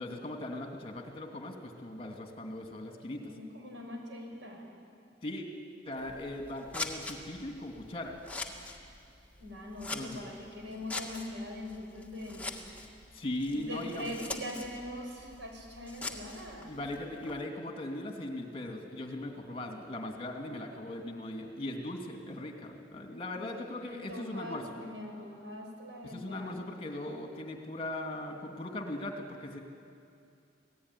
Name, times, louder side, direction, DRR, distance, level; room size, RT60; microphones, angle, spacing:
voice 1, 0.0-3.3 5.2-5.5 5.9-8.1 9.9-10.2 13.1-14.3 16.7-24.7 26.0-29.6, left 1 dB, 30° left, 2 dB, 2.7 m, -39 dB
voice 2, 3.2-4.7 9.4-12.5 13.5-16.7 23.3-26.5, left 1 dB, 80° right, 1 dB, 6.3 m, -42 dB
Scissors, 6.0-17.4, left 2 dB, 10° left, 1.8 m, -44 dB
26.5 x 18.0 x 10.0 m, 2.5 s
head